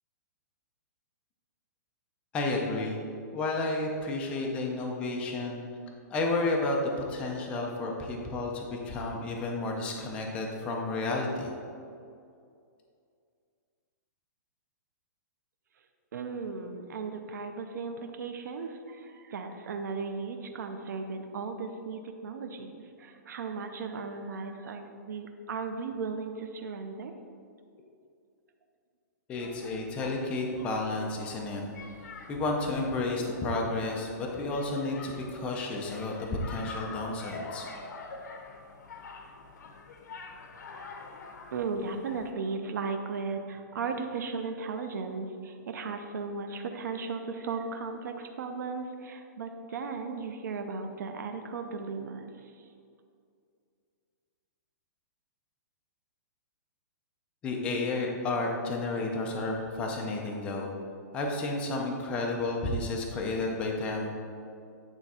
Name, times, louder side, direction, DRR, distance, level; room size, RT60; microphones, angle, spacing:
voice 1, 2.3-3.0 3.3-5.6 6.1-6.8 7.1-11.5 29.3-31.6 32.3-36.1 36.5-37.7 57.4-60.7 61.1-64.1, left 2 dB, 10° left, 0 dB, 0.5 m, -31 dB
voice 2, 16.1-27.1 41.5-52.3, right 4 dB, 80° right, 6 dB, 0.6 m, -36 dB
sound 1, 29.3-42.3, left 3 dB, 80° left, 0.8 m, -46 dB
8.8 x 3.5 x 4.2 m, 2.4 s
hypercardioid pair, 175°, 10 cm